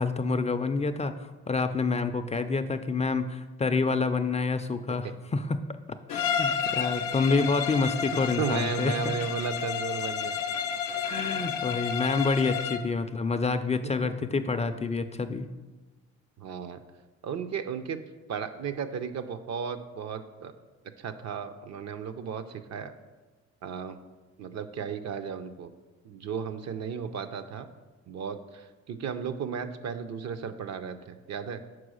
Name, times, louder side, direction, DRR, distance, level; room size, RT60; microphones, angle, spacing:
voice 1, 0.0-5.6 6.1-8.9 11.0-15.5, left 4 dB, 25° left, 9 dB, 0.3 m, -28 dB
Bowed string instrument, 6.1-12.9, left 7 dB, 80° left, 0.6 m, -31 dB
voice 2, 8.4-10.4 13.8-13.9 14.7-14.8 16.4-16.8 17.2-18.0 18.3-20.5 21.0-22.9 23.6-24.0 24.4-25.7 26.0-27.7 28.1-31.6, right 6 dB, 60° right, 9 dB, 0.6 m, -34 dB
6.1 x 4.7 x 6.3 m, 1.3 s
cardioid pair, 90°, 30 cm